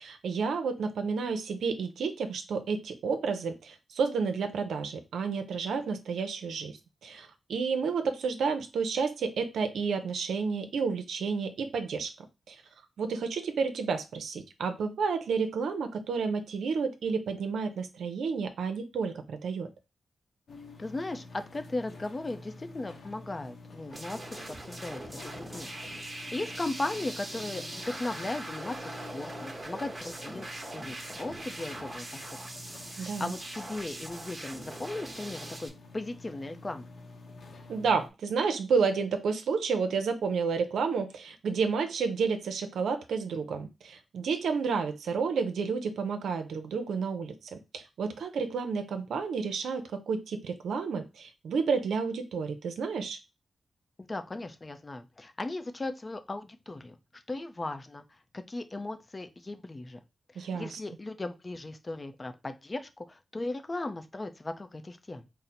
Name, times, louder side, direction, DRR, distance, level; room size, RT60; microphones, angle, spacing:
voice 1, 0.0-6.7 7.0-12.1 12.5-12.6 13.0-19.7 33.0-33.3 37.7-53.2 60.4-60.8, right 5 dB, 85° right, 7 dB, 0.5 m, -31 dB
sound 1, 20.5-38.1, left 3 dB, 75° left, 0.7 m, -49 dB
voice 2, 20.8-25.7 26.0-30.5 30.7-32.2 32.9-36.9 54.0-58.0 58.5-60.0 60.3-65.3, left 2 dB, 35° left, 8 dB, 0.5 m, -37 dB
sound 2, 23.9-35.7, right 1 dB, 30° right, 1.0 m, -41 dB
3.8 x 2.1 x 4.2 m, 0.26 s
cardioid pair, 50°, 0 cm